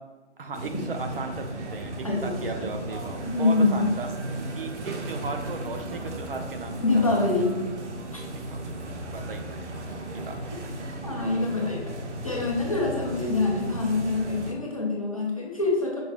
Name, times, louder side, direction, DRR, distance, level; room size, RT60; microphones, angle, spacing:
voice 1, 0.4-4.1 4.6-7.3 8.5-8.6 8.9-9.7 10.3-10.4 10.6-10.7, right 3 dB, 55° right, 5 dB, 0.5 m, -36 dB
sound 1, 0.5-14.5, right 1 dB, 80° right, 0.8 m, -35 dB
voice 2, 2.0-2.7 3.2-3.9 6.8-7.6 8.1-8.2 11.0-12.0 12.2-16.0, left 3 dB, 30° left, -2 dB, 0.5 m, -25 dB
5.2 x 2.2 x 3.2 m, 1.2 s
hypercardioid pair, 175°, 35 cm